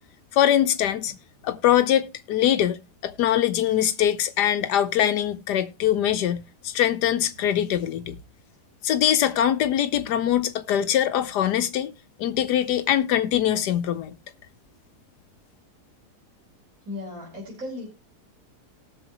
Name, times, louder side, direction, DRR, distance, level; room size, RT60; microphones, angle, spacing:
voice 1, 0.3-1.1 1.4-2.8 3.0-8.2 8.8-11.9 12.2-14.1, left 10 dB, 85° left, 1.3 m, -22 dB
voice 2, 16.8-17.9, left 2 dB, 55° right, 4.2 m, -35 dB
18.5 x 6.5 x 3.0 m
omnidirectional pair, 1.7 m